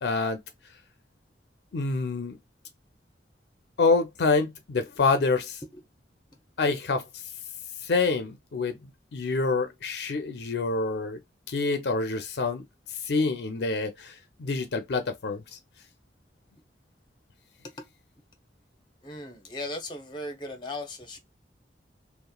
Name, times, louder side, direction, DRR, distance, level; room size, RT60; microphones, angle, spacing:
voice 1, 0.0-0.4 1.7-2.3 3.8-5.6 6.6-7.0 7.8-8.8 9.1-11.2 11.5-12.6 13.1-14.1 14.4-15.6, left 3 dB, 70° left, 0.4 m, -26 dB
voice 2, 19.0-21.2, left 1 dB, 25° left, 0.7 m, -37 dB
2.9 x 2.1 x 2.2 m
head